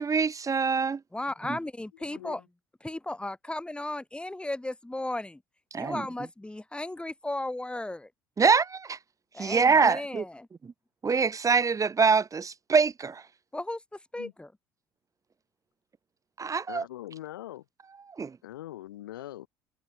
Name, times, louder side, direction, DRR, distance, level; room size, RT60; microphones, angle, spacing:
voice 1, 0.0-1.0 5.7-6.0 8.4-9.0 9.4-10.2 11.0-13.2 16.4-16.8 18.2-18.3, right 5 dB, 30° right, 1.3 m, -24 dB
voice 2, 1.1-2.4 2.8-5.4 5.7-8.1 9.3-10.5 13.5-13.8 14.1-14.5, left 1 dB, 10° left, 2.4 m, -35 dB
voice 3, 2.0-2.4 14.1-14.3 16.7-17.6 18.4-19.5, left 14 dB, 85° left, 5.7 m, -42 dB
hypercardioid pair, 60°, 11 cm